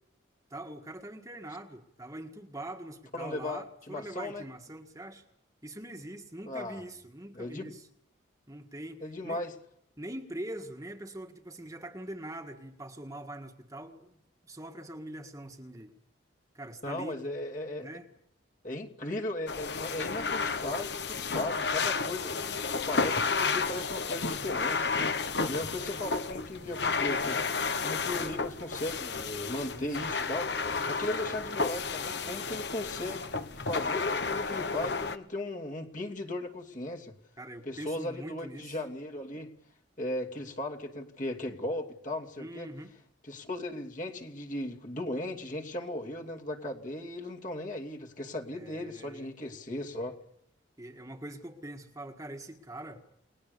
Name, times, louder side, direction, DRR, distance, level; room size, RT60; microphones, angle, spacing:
voice 1, 0.5-5.2 5.6-7.9 8.5-9.4 10.0-14.2 14.5-15.9 16.5-17.2 17.8-18.1 29.7-30.3 37.4-38.8 42.4-42.9 48.5-49.3 50.8-53.0, right 1 dB, 15° right, 3 dB, 1.7 m, -43 dB
voice 2, 3.1-4.4 6.5-6.8 7.3-7.7 9.0-9.5 16.8-17.9 18.6-22.3 22.7-30.5 30.9-37.1 37.6-39.5 40.0-42.7 43.2-50.2, left 1 dB, 40° left, 1 dB, 2.8 m, -37 dB
sound 1, 19.5-35.2, left 4 dB, 60° left, 1.3 m, -32 dB
30.0 x 20.5 x 6.9 m, 0.73 s
head